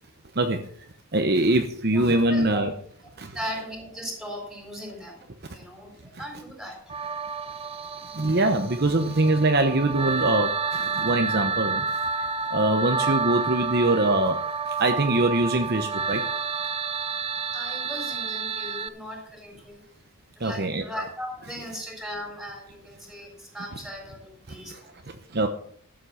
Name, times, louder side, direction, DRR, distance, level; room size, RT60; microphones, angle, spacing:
voice 1, 1.1-2.7 3.2-3.4 6.1-6.2 8.1-11.8 12.5-16.2 20.4-20.8 24.7-24.8 25.3-25.5, right 2 dB, 45° right, 6 dB, 0.9 m, -23 dB
voice 2, 1.9-2.6 3.3-5.1 5.5-6.8 13.0-13.1 17.5-19.8 20.4-24.7, equal, ahead, 0 dB, 4.1 m, -38 dB
sound 1, 6.9-18.9, right 5 dB, 25° right, 0.4 m, -29 dB
13.0 x 7.6 x 5.7 m, 0.62 s
head